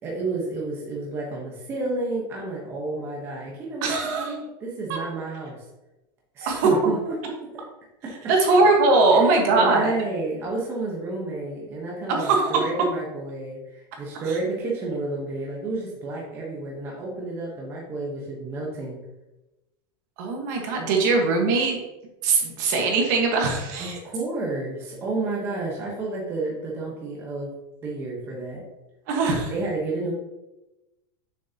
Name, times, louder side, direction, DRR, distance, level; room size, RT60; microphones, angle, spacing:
voice 1, 0.0-5.6 6.3-7.1 7.5-7.6 8.0-8.1 9.1-19.0 23.8-27.5 27.8-28.6 29.5-30.1, right 2 dB, 20° right, -3 dB, 1.0 m, -31 dB
voice 2, 3.8-4.3 4.9-5.0 6.4-6.8 8.3-9.9 12.1-12.6 14.3-14.4 20.2-21.8 22.2-24.0 29.1-29.5, right 3 dB, 45° right, 1 dB, 1.4 m, -21 dB
6.8 x 6.3 x 2.8 m, 1.0 s
supercardioid pair, 180°, 13 cm